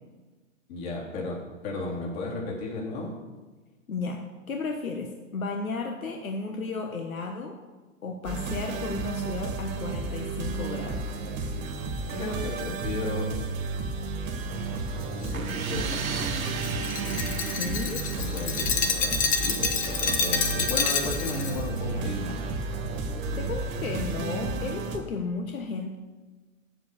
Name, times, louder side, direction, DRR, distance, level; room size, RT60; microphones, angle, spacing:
voice 1, 0.7-3.1 12.1-13.3 14.9-16.4 16.9-17.5 18.2-22.4, left 2 dB, 50° left, -3 dB, 3.6 m, -35 dB
voice 2, 3.9-7.6 8.0-11.2 17.6-18.0 23.4-26.0, left 4 dB, 90° left, 3 dB, 1.2 m, -33 dB
sound 1, 8.2-25.0, right 3 dB, 25° right, 1.5 m, -32 dB
Glass, 15.2-21.6, left 5 dB, 20° left, 0.9 m, -28 dB
sound 2, 15.3-19.1, right 6 dB, 90° right, 1.1 m, -36 dB
7.9 x 7.5 x 6.8 m, 1.3 s
hypercardioid pair, 125°, 40 cm